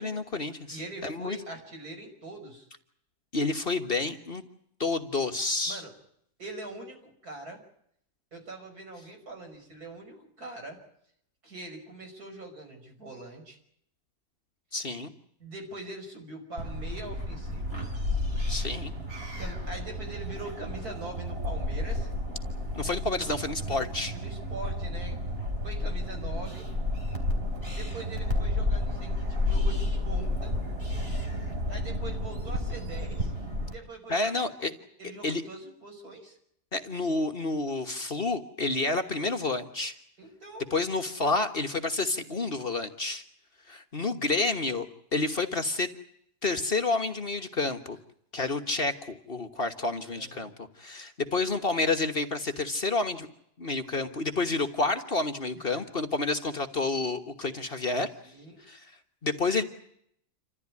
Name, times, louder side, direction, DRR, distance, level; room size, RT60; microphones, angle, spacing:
voice 1, 0.0-1.4 3.3-4.4 4.8-5.8 14.7-15.1 18.5-18.9 22.7-24.1 34.1-34.7 35.2-35.4 36.7-40.0 40.7-43.2 43.7-44.9 45.1-45.9 46.4-48.0 48.3-53.3 53.6-58.1 58.6-58.9 59.2-59.6, left 3 dB, 40° left, 7 dB, 1.5 m, -29 dB
voice 2, 0.7-2.7 5.7-5.9 6.4-7.6 8.3-10.8 11.4-13.6 15.4-17.8 19.4-22.1 23.7-23.8 24.1-25.2 25.6-26.7 27.7-30.5 31.7-33.3 33.7-34.5 35.0-36.4 40.2-40.7 50.1-50.5 55.7-55.8 58.2-58.6, right 2 dB, 75° right, 4 dB, 6.1 m, -42 dB
sound 1, 16.6-33.7, left 1 dB, 40° right, 4.4 m, -31 dB
28.0 x 14.0 x 9.6 m, 0.73 s
omnidirectional pair, 1.6 m